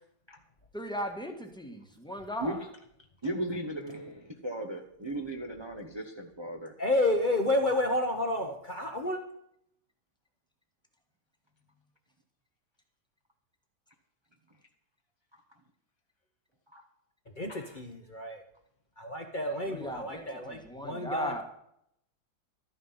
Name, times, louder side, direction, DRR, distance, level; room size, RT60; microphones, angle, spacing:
voice 1, 0.7-2.7 19.7-21.4, equal, 5° left, 4 dB, 1.4 m, -37 dB
voice 2, 3.2-6.7 16.7-16.8 17.5-17.7, right 1 dB, 20° right, 1 dB, 0.8 m, -36 dB
voice 3, 6.8-9.2 17.4-18.4 19.0-21.4, left 1 dB, 35° left, 3 dB, 1.1 m, -30 dB
13.0 x 9.7 x 5.6 m, 0.75 s
omnidirectional pair, 1.8 m